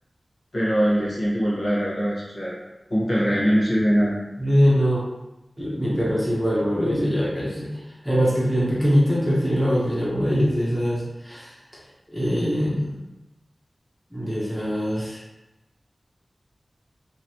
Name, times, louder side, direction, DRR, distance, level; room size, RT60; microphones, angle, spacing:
voice 1, 0.5-2.5 2.9-4.1, equal, 70° left, -8 dB, 1.3 m, -22 dB
voice 2, 4.4-5.0 5.6-11.5 12.1-13.0 14.1-15.2, equal, ahead, -7 dB, 0.9 m, -22 dB
3.0 x 2.8 x 2.8 m, 0.99 s
wide cardioid pair, 80°, 0 cm